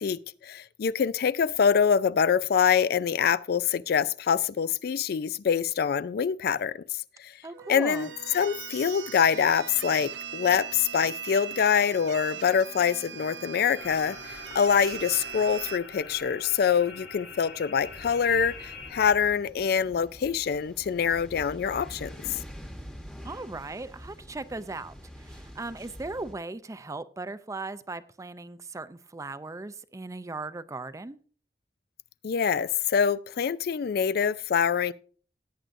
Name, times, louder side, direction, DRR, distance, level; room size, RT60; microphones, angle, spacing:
voice 1, 0.0-6.8 7.2-7.3 7.7-22.1 32.2-34.9, left 7 dB, 60° left, 0.4 m, -25 dB
voice 2, 7.4-8.1 23.2-31.2, right 3 dB, 20° right, 0.4 m, -38 dB
sound 1, 7.5-15.8, right 9 dB, 75° right, 0.5 m, -40 dB
sound 2, 13.8-18.9, left 4 dB, 90° left, 2.1 m, -44 dB
sound 3, 17.8-26.3, equal, 5° left, 1.1 m, -46 dB
17.0 x 9.0 x 2.6 m
head